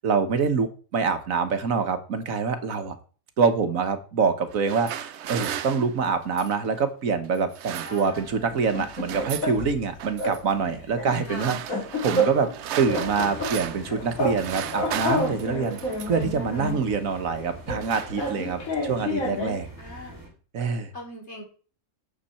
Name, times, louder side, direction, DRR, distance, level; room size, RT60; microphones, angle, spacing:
voice 1, 0.0-3.0 3.4-11.8 12.0-12.5 12.8-15.8 16.0-19.7 20.5-20.9, right 5 dB, 90° right, 9 dB, 1.7 m, -25 dB
sound 1, 4.5-6.7 7.4-8.4 8.6-9.6 10.0-10.4 11.1-13.9 14.2-16.3 17.1-17.3 17.6-18.7, right 10 dB, 65° right, 0.9 m, -36 dB
voice 2, 7.8-8.5 11.2-11.6 19.8-20.2 20.9-21.4, left 1 dB, 55° left, 1 dB, 3.9 m, -41 dB
sound 2, 8.5-9.9 10.2-10.4 10.7-12.6 12.9-14.4 14.7-16.9 17.7-19.7, equal, 90° left, 2.7 m, -29 dB
sound 3, 12.9-20.3, right 1 dB, 15° right, 3.2 m, -43 dB
12.0 x 8.2 x 4.3 m, 0.39 s
omnidirectional pair, 1.4 m